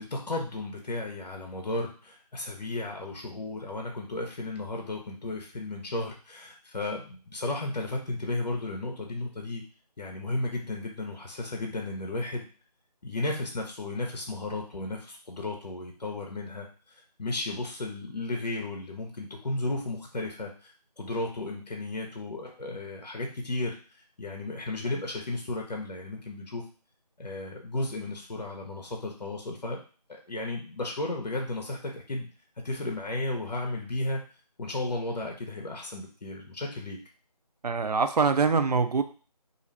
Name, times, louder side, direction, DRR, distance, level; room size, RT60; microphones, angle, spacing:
voice 1, 0.0-9.6 10.0-12.4 13.0-23.8 24.2-26.6 27.2-29.8 30.1-32.3 32.6-34.2 34.6-37.0, left 2 dB, 75° left, 1 dB, 0.7 m, -34 dB
voice 2, 37.6-39.0, right 5 dB, 70° right, 8 dB, 0.4 m, -24 dB
2.4 x 2.4 x 3.2 m, 0.38 s
figure-of-eight pair, 170°, 21 cm